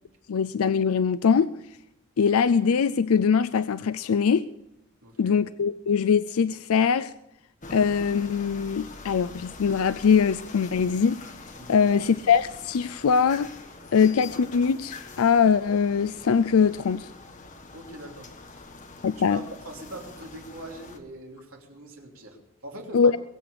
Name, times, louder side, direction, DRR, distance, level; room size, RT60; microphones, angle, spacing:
voice 1, 0.3-1.5 2.2-4.4 5.2-7.1 7.7-11.2 11.7-13.5 13.9-17.1 19.0-19.4 22.9-23.2, left 6 dB, 90° left, 0.4 m, -22 dB
voice 2, 5.0-5.4 11.6-11.9 17.7-18.6 19.2-23.1, right 1 dB, 85° right, 3.2 m, -42 dB
sound 1, 7.6-21.0, left 3 dB, 35° left, 1.6 m, -44 dB
22.5 x 8.0 x 6.8 m
head